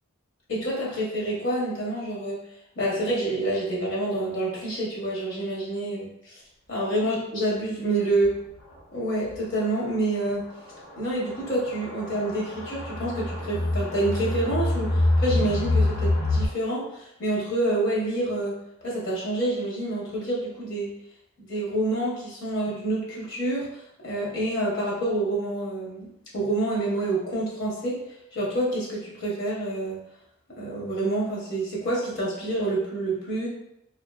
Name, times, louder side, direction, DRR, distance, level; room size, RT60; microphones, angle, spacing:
voice 1, 0.5-2.4 2.8-6.4 6.7-8.3 8.9-10.5 11.0-18.6 18.8-20.9 21.4-23.7 24.0-26.1 26.3-28.0 28.3-30.0 30.6-33.5, right 1 dB, 60° left, -5 dB, 0.8 m, -27 dB
sound 1, 8.2-8.3 8.7-8.8 9.3-9.4 10.3-16.5, left 2 dB, 85° left, 1.5 m, -26 dB
2.6 x 2.5 x 2.2 m, 0.81 s
head